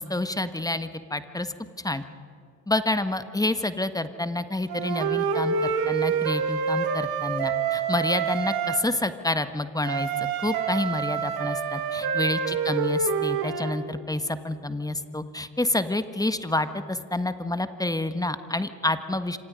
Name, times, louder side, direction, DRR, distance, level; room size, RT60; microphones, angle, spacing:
voice 1, 0.0-1.5 1.8-2.0 2.7-19.4, left 2 dB, 10° left, 11 dB, 1.5 m, -28 dB
Wind instrument woodwind instrument, 4.7-8.8 9.8-13.8, right 6 dB, 60° right, 2.7 m, -27 dB
26.5 x 26.5 x 5.3 m, 2.3 s
hypercardioid pair, 60°, 42 cm